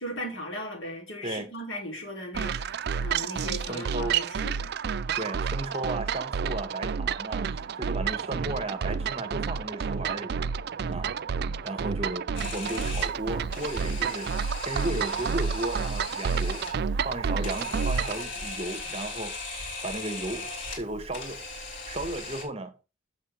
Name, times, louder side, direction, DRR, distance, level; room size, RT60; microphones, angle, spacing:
voice 1, 0.0-4.7, equal, 80° left, 4.7 m, -37 dB
sound 1, 2.3-18.2, right 6 dB, 55° right, 0.4 m, -30 dB
voice 2, 3.7-4.2 5.2-10.5 10.9-11.1 11.6-14.3 14.6-21.4 21.9-22.7, right 2 dB, 30° right, 1.2 m, -35 dB
Camera, 12.3-22.4, left 2 dB, 60° left, 4.7 m, -38 dB
7.5 x 6.2 x 6.4 m
head